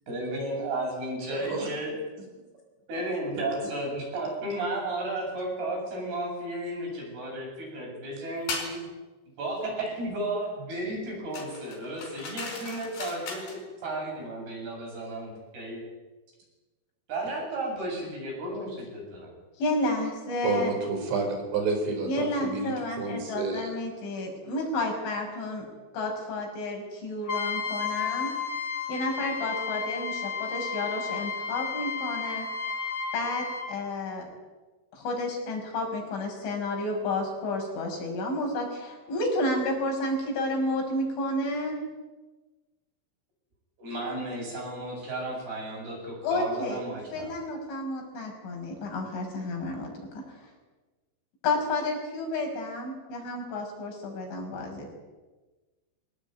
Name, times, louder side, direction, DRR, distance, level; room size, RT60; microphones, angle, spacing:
voice 1, 0.1-2.0 2.9-8.8 9.4-15.8 17.1-19.3 43.8-47.3, right 1 dB, 55° right, -1 dB, 9.8 m, -33 dB
voice 2, 1.3-1.7 20.4-22.7 23.0-23.7, right 4 dB, 70° right, 4 dB, 6.8 m, -29 dB
sound 1, 8.5-8.8 11.3-13.6, left 4 dB, 60° left, 7.1 m, -37 dB
voice 3, 19.6-20.7 22.0-25.7 25.9-28.3 28.9-32.5 33.1-34.2 34.9-41.8 46.2-46.8 47.1-50.4 51.4-54.9, left 2 dB, 80° left, 1 dB, 8.3 m, -31 dB
Trumpet, 27.3-33.7, left 5 dB, 10° left, 4.3 m, -32 dB
24.0 x 19.0 x 9.5 m, 1.2 s
omnidirectional pair, 5.4 m